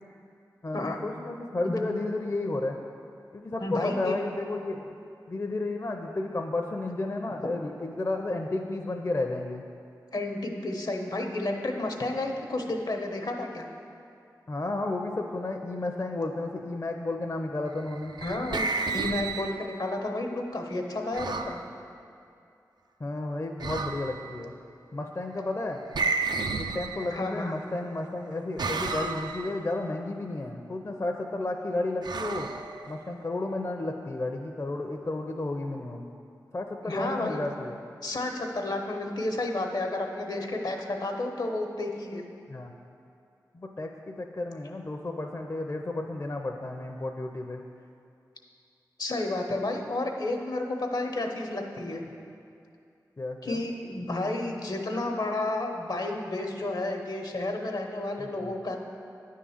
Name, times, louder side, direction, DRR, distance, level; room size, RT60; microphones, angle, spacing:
voice 1, 0.6-2.8 3.3-4.9 5.3-9.6 14.5-18.1 23.0-24.5 24.9-25.8 26.5-32.5 32.9-36.0 36.5-37.8 42.5-42.7 43.5-47.6 53.2-53.6 58.2-58.5, left 2 dB, 40° left, 2 dB, 0.6 m, -32 dB
voice 2, 3.6-4.1 10.1-13.6 18.2-21.6 27.1-27.6 36.9-37.5 38.0-42.2 49.0-52.0 53.4-58.8, left 2 dB, 70° left, 2 dB, 1.0 m, -31 dB
sound 1, 17.9-19.9 21.1-21.6 23.6-24.3 25.9-27.4 28.6-29.6 32.0-33.2, right 4 dB, 75° right, 0.4 m, -32 dB
9.8 x 3.7 x 7.1 m, 2.5 s
cardioid pair, 45°, 7 cm